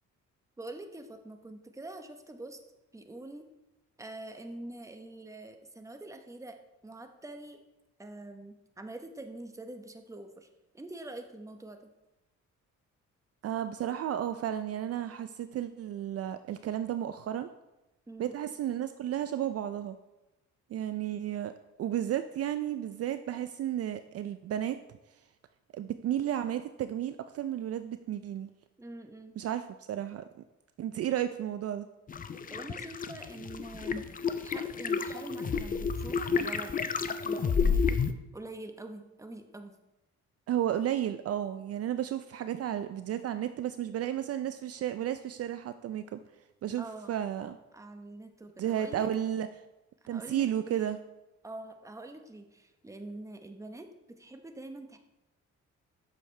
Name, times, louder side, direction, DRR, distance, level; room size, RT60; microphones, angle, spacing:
voice 1, 0.6-2.6 2.9-3.5 4.0-6.6 6.8-7.6 8.0-10.5 10.7-11.9 18.1-18.4 28.8-29.4 32.5-36.8 37.3-38.0 38.3-39.7 46.8-47.1 47.7-49.1 50.0-50.9 51.4-53.9 54.2-55.0, right 2 dB, 10° right, 5 dB, 0.9 m, -45 dB
voice 2, 13.4-17.5 18.2-20.0 20.7-21.5 21.8-24.8 25.7-28.5 29.4-30.2 30.8-31.9 40.5-46.2 46.6-47.6 48.6-49.5 50.1-51.0, right 11 dB, 55° right, 10 dB, 0.4 m, -33 dB
sound 1, 32.1-38.1, left 5 dB, 30° left, 0.5 m, -30 dB
8.2 x 6.4 x 3.2 m, 0.98 s
cardioid pair, 90°, 30 cm